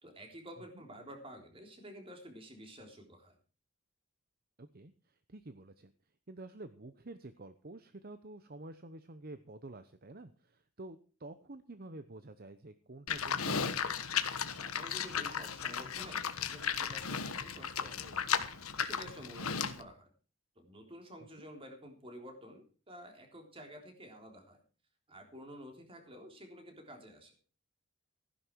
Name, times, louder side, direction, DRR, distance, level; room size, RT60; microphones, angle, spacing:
voice 1, 0.0-3.4 14.5-18.4 18.8-20.1 20.6-24.6 25.1-27.3, equal, 25° right, 4 dB, 3.6 m, -51 dB
voice 2, 4.6-5.9 6.3-13.8 21.4-21.5, right 2 dB, 45° right, 11 dB, 0.9 m, -49 dB
Livestock farm animals working animals, 13.1-19.8, left 7 dB, 90° left, 1.3 m, -35 dB
15.5 x 10.5 x 4.6 m, 0.37 s
head